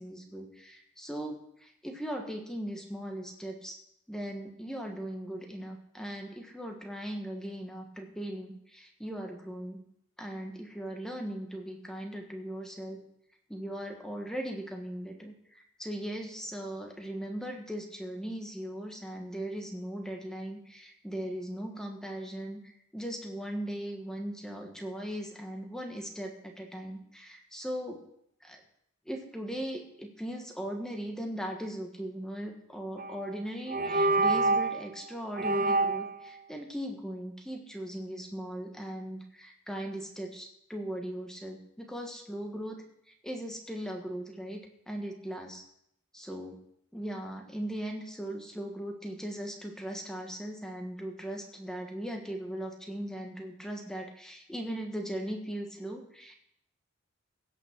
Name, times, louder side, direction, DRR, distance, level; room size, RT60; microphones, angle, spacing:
voice 1, 0.0-3.8 4.1-9.8 10.2-13.0 13.5-28.0 28.4-28.6 29.0-42.8 43.2-45.6 46.1-46.6 46.9-56.3, right 1 dB, 5° left, 2 dB, 1.3 m, -39 dB
sound 1, 33.0-33.3 33.7-34.8 35.4-36.1, right 3 dB, 40° right, 0.6 m, -26 dB
16.0 x 6.1 x 6.0 m, 0.73 s
head